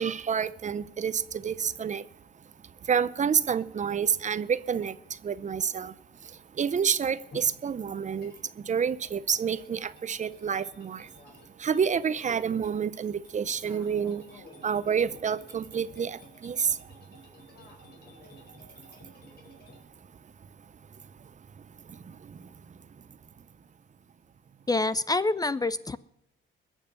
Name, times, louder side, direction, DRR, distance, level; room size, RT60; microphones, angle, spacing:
voice 1, 0.0-2.0 2.9-4.9 5.2-5.9 6.6-8.3 8.7-11.0 11.6-14.2 14.6-16.7, right 7 dB, 40° right, 0.6 m, -28 dB
sound 1, 7.3-19.8, left 2 dB, 55° left, 4.6 m, -54 dB
voice 2, 24.7-26.0, left 2 dB, 20° left, 0.4 m, -26 dB
21.0 x 7.3 x 6.9 m
cardioid pair, 90°, 20 cm